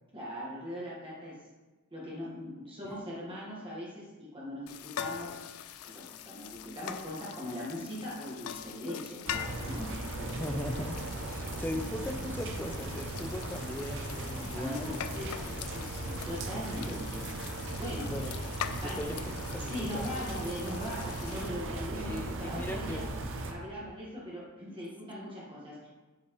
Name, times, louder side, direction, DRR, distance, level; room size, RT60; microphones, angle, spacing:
voice 1, 0.1-1.4 1.9-5.4 5.8-10.4 14.5-17.3 17.6-18.1 18.8-19.2 19.6-23.1 23.5-25.9, equal, 25° right, -7 dB, 1.5 m, -40 dB
sound 1, 4.7-21.5, left 9 dB, 80° left, 0.4 m, -43 dB
sound 2, 9.3-23.5, right 2 dB, 60° right, 0.8 m, -38 dB
voice 2, 10.4-11.0 11.3-15.5 16.5-17.2 18.1-18.3 18.8-20.2 21.9-23.1, left 1 dB, 10° left, 5 dB, 0.5 m, -39 dB
7.9 x 5.7 x 3.1 m, 1.2 s
head